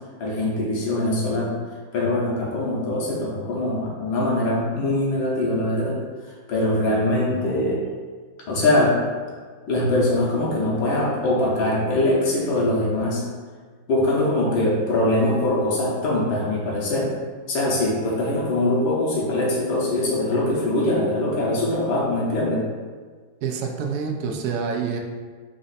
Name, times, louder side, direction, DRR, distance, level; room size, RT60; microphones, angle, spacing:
voice 1, 0.2-1.5 1.9-6.0 6.5-7.8 8.5-8.9 9.7-13.2 13.9-17.1 17.5-22.6, left 1 dB, 75° left, -4 dB, 1.7 m, -22 dB
voice 2, 23.4-25.0, right 6 dB, 85° right, 3 dB, 0.8 m, -27 dB
4.1 x 2.5 x 4.0 m, 1.5 s
omnidirectional pair, 2.2 m